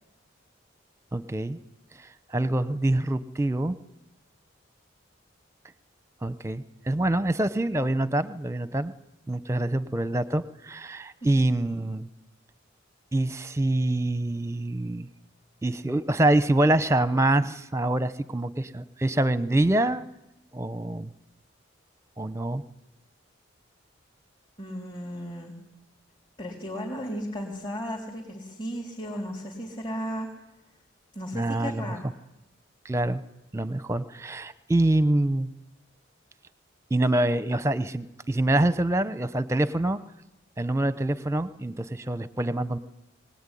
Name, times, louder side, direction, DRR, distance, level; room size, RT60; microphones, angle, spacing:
voice 1, 1.1-1.6 2.0-3.8 6.2-8.9 9.3-12.1 13.1-15.1 15.6-20.0 20.5-21.1 22.2-22.6 31.3-31.9 32.8-33.2 33.5-35.5 36.9-40.0 40.6-42.8, right 1 dB, 15° right, 15 dB, 0.8 m, -25 dB
voice 2, 24.6-25.5 26.4-30.3 31.2-32.0, equal, 25° left, -3 dB, 3.6 m, -35 dB
23.0 x 18.5 x 10.0 m, 0.92 s
head